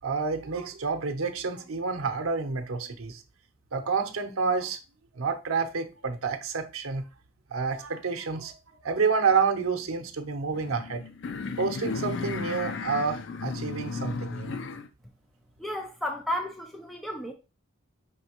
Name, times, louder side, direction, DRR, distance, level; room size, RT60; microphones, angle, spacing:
voice 1, 0.0-3.2 3.7-4.8 5.1-7.0 7.5-8.5 8.8-11.0 11.6-14.6, right 5 dB, 85° right, 0.7 m, -29 dB
sound 1, 10.5-14.9, left 4 dB, 55° left, 0.4 m, -34 dB
voice 2, 15.6-17.3, left 1 dB, ahead, 0.5 m, -33 dB
5.4 x 3.2 x 2.9 m
head